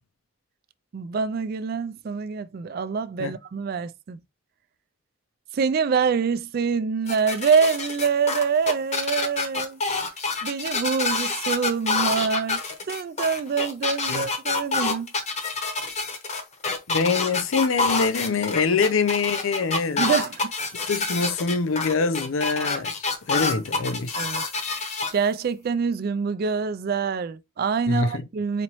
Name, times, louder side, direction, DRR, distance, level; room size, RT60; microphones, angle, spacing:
voice 1, 0.9-4.2 5.5-9.8 10.4-12.6 12.9-15.1 20.0-20.5 20.8-20.9 24.2-24.4 24.7-24.8 25.1-28.6, right 5 dB, 50° right, 0.3 m, -25 dB
sound 1, 7.1-25.1, left 3 dB, 35° left, 0.8 m, -27 dB
voice 2, 16.9-20.1 20.9-24.2 27.9-28.2, left 4 dB, 75° left, 0.5 m, -24 dB
4.2 x 2.9 x 3.0 m
head